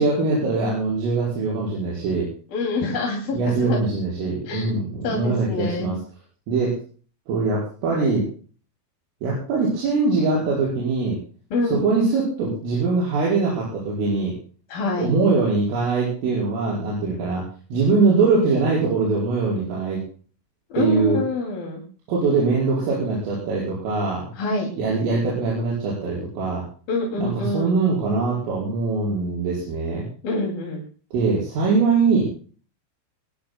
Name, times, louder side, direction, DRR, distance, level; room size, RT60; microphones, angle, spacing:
voice 1, 0.0-2.3 3.3-6.0 6.5-6.7 7.3-8.2 9.2-11.2 11.6-14.3 15.0-17.4 17.7-20.0 20.7-21.2 22.1-24.3 24.8-26.6 27.2-30.0 31.1-32.2, right 4 dB, 70° right, -5 dB, 7.8 m, -22 dB
voice 2, 2.5-3.8 4.5-4.8 5.0-6.0 11.5-11.8 14.7-15.1 20.7-21.8 24.4-24.7 26.9-27.7 30.2-30.8, left 2 dB, 50° left, -1 dB, 3.9 m, -26 dB
23.5 x 20.5 x 2.2 m, 0.42 s
omnidirectional pair, 6.0 m